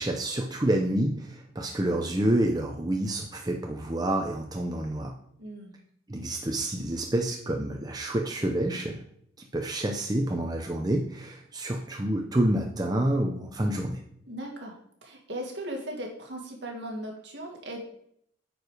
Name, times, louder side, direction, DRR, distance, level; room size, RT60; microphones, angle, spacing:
voice 1, 0.0-5.1 6.1-9.0 9.4-14.0, right 1 dB, 20° right, 2 dB, 0.7 m, -28 dB
voice 2, 5.4-5.7 14.3-17.8, right 1 dB, 65° right, 0 dB, 2.1 m, -38 dB
9.1 x 4.9 x 4.9 m, 0.68 s
head